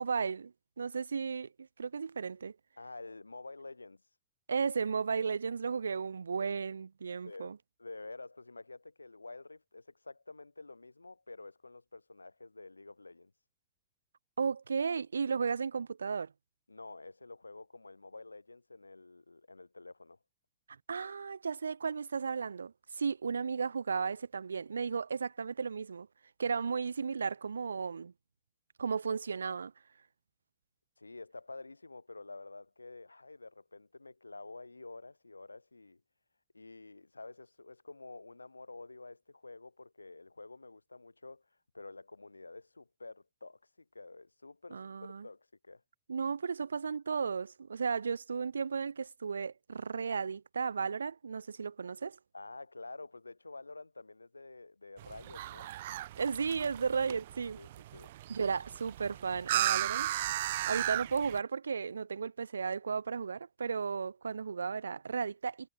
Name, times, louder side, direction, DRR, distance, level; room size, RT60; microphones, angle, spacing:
voice 1, 0.0-2.6 4.5-7.6 14.4-16.3 20.9-26.1 26.4-28.1 28.8-29.7 44.7-45.3 46.1-52.2 56.2-57.6 58.3-60.1 60.7-65.7, right 5 dB, 80° right, 0.6 m, -34 dB
voice 2, 2.8-4.0 7.2-7.5 7.8-13.3 16.7-20.2 31.0-36.0 36.5-41.4 41.7-45.8 52.3-55.7 57.6-58.1, left 3 dB, 85° left, 3.9 m, -49 dB
sound 1, 55.0-61.4, right 14 dB, 60° right, 1.3 m, -36 dB
figure-of-eight pair, 100°, 0 cm